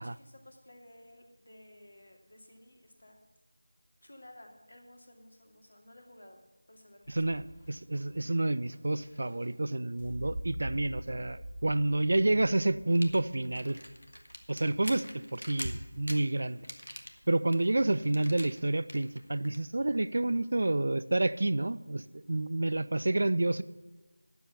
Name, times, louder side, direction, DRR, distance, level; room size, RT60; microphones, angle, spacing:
voice 1, 0.0-3.2 4.0-6.4 6.7-7.2, left 1 dB, 60° left, 3 dB, 2.4 m, -55 dB
sound 1, 7.0-15.0, right 1 dB, 20° left, 2.4 m, -46 dB
voice 2, 7.1-13.8 14.5-16.6 17.3-23.6, right 2 dB, 50° right, 15 dB, 0.5 m, -29 dB
sound 2, 12.9-19.6, equal, 90° left, 1.7 m, -44 dB
10.5 x 7.3 x 8.2 m, 1.2 s
figure-of-eight pair, 170°, 0 cm